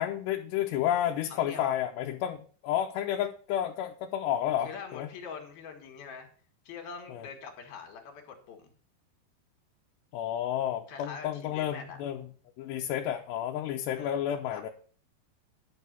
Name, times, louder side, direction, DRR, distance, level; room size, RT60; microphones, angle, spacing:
voice 1, 0.0-5.1 7.1-7.3 10.1-12.3 12.6-14.7, left 11 dB, 85° left, 1 dB, 3.0 m, -31 dB
voice 2, 1.3-1.7 4.6-6.3 6.7-8.7 10.9-12.0 14.0-14.7, left 6 dB, 65° left, 3 dB, 3.8 m, -43 dB
11.0 x 6.6 x 6.8 m, 0.43 s
omnidirectional pair, 4.8 m